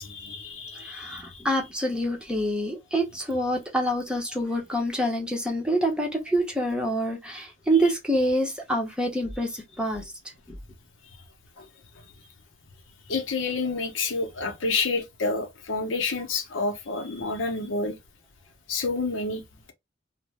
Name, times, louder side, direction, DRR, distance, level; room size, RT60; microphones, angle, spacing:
voice 1, 0.0-1.4 11.6-11.7 13.1-18.0 18.7-19.4, left 3 dB, 85° left, 0.8 m, -29 dB
voice 2, 0.8-10.1 10.5-10.6, right 1 dB, 5° right, 0.7 m, -26 dB
2.6 x 2.1 x 3.2 m
head